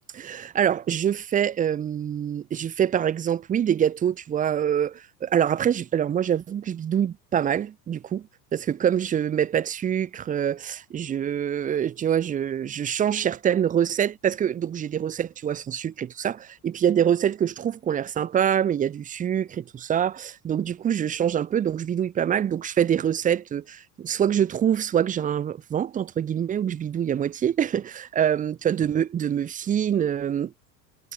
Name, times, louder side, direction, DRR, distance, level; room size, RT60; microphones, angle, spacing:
voice 1, 0.1-30.5, right 9 dB, 15° right, 0.6 m, -25 dB
figure-of-eight pair, 75°, 50 cm